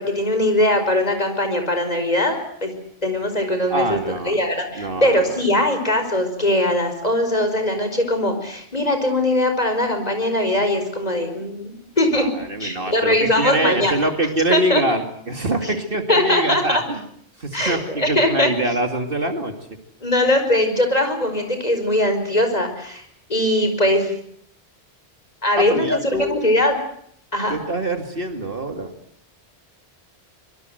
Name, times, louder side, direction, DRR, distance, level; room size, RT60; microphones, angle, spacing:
voice 1, 0.0-2.7 3.0-4.0 4.3-12.3 12.6-13.9 14.5-14.8 15.6-15.7 16.1-16.8 17.5-18.5 20.0-23.0 23.3-24.1 25.4-26.7 27.3-27.5, left 1 dB, 40° left, 6 dB, 5.1 m, -20 dB
voice 2, 3.7-4.4 4.7-5.3 12.1-17.0 17.4-19.5 25.6-26.4 27.5-28.9, right 1 dB, 55° right, 6 dB, 2.6 m, -24 dB
24.5 x 22.5 x 7.9 m, 0.65 s
omnidirectional pair, 1.1 m